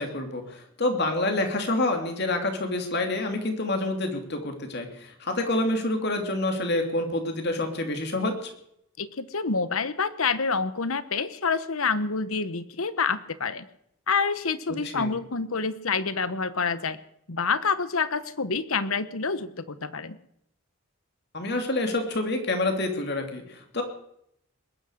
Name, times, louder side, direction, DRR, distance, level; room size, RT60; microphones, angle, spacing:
voice 1, 0.0-8.5 14.8-15.1 21.3-23.8, left 2 dB, 50° left, 5 dB, 2.8 m, -27 dB
voice 2, 9.0-13.6 14.1-17.0 17.3-20.2, left 5 dB, 75° left, 14 dB, 1.1 m, -27 dB
20.5 x 11.0 x 6.5 m, 0.73 s
head